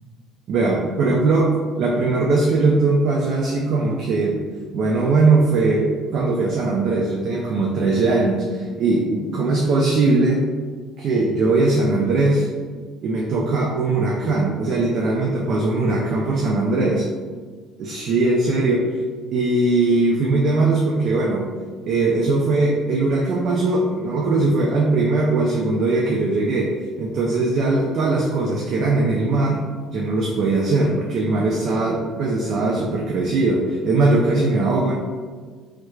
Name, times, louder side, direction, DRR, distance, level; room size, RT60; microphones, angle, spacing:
voice 1, 0.5-1.5 1.8-4.4 4.7-10.5 11.0-12.5 13.0-17.0 17.8-18.9 19.3-21.5 21.8-26.7 27.0-29.6 29.9-34.9, right 3 dB, 50° right, -2 dB, 0.4 m, -20 dB
3.2 x 3.1 x 2.3 m, 1.5 s
cardioid pair, 155°, 0 cm